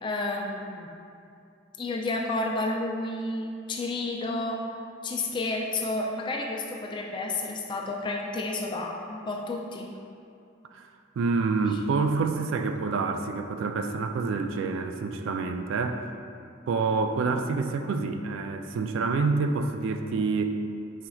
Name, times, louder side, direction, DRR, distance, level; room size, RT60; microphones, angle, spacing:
voice 1, 0.0-0.9 1.8-4.6 5.0-9.9, left 2 dB, 25° left, 0 dB, 0.3 m, -31 dB
voice 2, 11.2-16.1 16.7-20.6, right 4 dB, 65° right, 6 dB, 0.3 m, -27 dB
5.0 x 4.3 x 2.3 m, 2.5 s
head